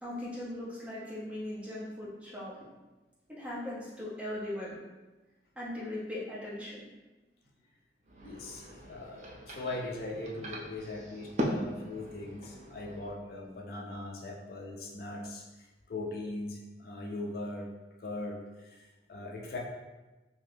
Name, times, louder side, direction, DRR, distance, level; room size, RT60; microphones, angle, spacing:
voice 1, 0.0-2.5 3.3-4.8 5.6-6.8, left 1 dB, 5° right, -8 dB, 0.7 m, -39 dB
sound 1, 8.0-13.1, equal, 40° right, 0.4 m, -39 dB
voice 2, 8.2-17.7 18.0-19.6, left 2 dB, 55° left, -1 dB, 0.4 m, -40 dB
2.6 x 2.3 x 3.4 m, 1.1 s
head